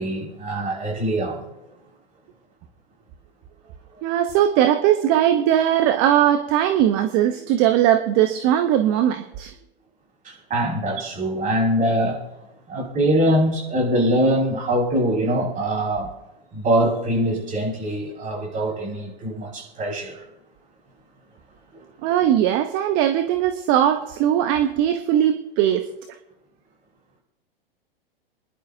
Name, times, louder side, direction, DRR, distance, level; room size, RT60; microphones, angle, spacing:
voice 1, 0.0-1.4 10.2-12.2 12.7-16.1 16.5-20.2, right 1 dB, 25° right, -3 dB, 5.6 m, -23 dB
voice 2, 4.0-9.5 22.0-25.9, right 11 dB, 40° right, 8 dB, 0.9 m, -19 dB
27.5 x 11.5 x 2.7 m, 0.94 s
hypercardioid pair, 115°, 30 cm